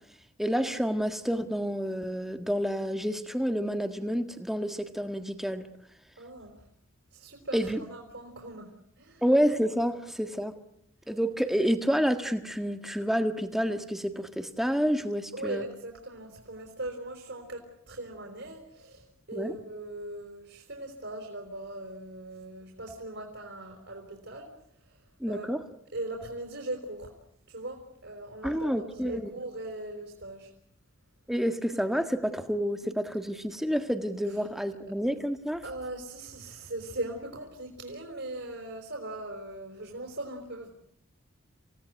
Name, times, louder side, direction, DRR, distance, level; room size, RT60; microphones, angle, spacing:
voice 1, 0.4-5.7 7.5-7.8 9.2-10.5 11.1-15.6 19.3-19.6 25.2-25.6 28.4-29.3 31.3-35.6, equal, ahead, 7 dB, 1.6 m, -29 dB
voice 2, 6.2-6.7 7.1-9.2 15.3-24.5 24.9-25.5 25.9-27.1 27.5-30.5 35.6-40.7, right 1 dB, 60° right, 2 dB, 4.5 m, -40 dB
28.0 x 17.5 x 9.4 m, 0.74 s
head